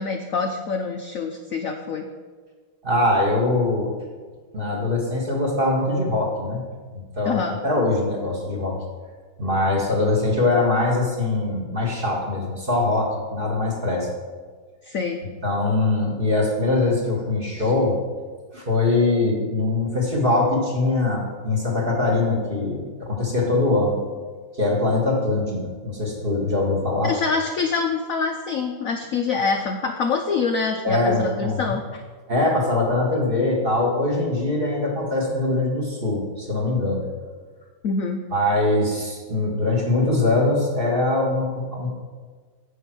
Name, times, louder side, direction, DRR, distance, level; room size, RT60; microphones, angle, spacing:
voice 1, 0.0-2.1 7.2-7.6 14.8-15.2 17.6-17.7 27.0-32.0 37.8-38.2, left 4 dB, 75° left, 5 dB, 0.7 m, -25 dB
voice 2, 2.8-3.9 4.5-6.6 6.9-8.8 9.4-14.1 15.4-18.0 18.5-24.0 24.5-27.1 30.8-31.7 32.3-37.1 38.3-41.9, left 2 dB, 30° right, -1 dB, 1.9 m, -22 dB
9.3 x 7.2 x 6.0 m, 1.5 s
omnidirectional pair, 2.2 m